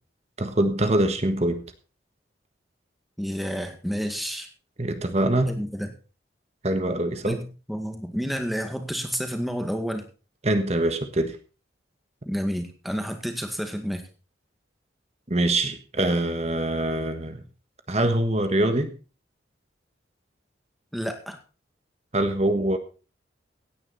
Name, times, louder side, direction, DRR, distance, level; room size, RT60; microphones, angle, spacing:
voice 1, 0.4-1.6 4.8-5.6 6.6-7.4 10.4-11.4 15.3-17.4 17.9-18.9 22.1-22.8, right 1 dB, 35° right, 8 dB, 1.5 m, -24 dB
voice 2, 3.2-4.5 5.5-5.9 7.2-7.4 7.7-10.0 12.3-14.0 20.9-21.4, equal, ahead, 5 dB, 2.0 m, -30 dB
17.0 x 9.8 x 4.1 m, 0.35 s
head